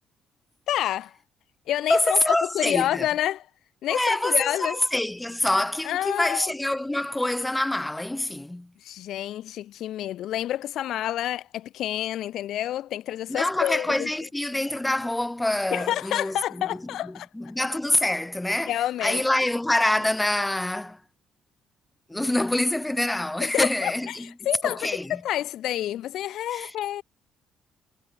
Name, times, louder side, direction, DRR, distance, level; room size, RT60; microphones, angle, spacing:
voice 1, 0.7-1.2 1.7-3.5 3.8-4.8 5.8-6.5 8.8-14.1 15.7-17.3 18.7-19.2 23.4-27.0, left 12 dB, 60° left, 0.5 m, -28 dB
voice 2, 1.9-3.1 3.9-8.7 13.3-16.8 17.0-18.7 19.0-21.0 22.1-24.3 24.6-25.1 26.5-26.7, left 1 dB, 10° left, 0.5 m, -26 dB
figure-of-eight pair, 45°, 0 cm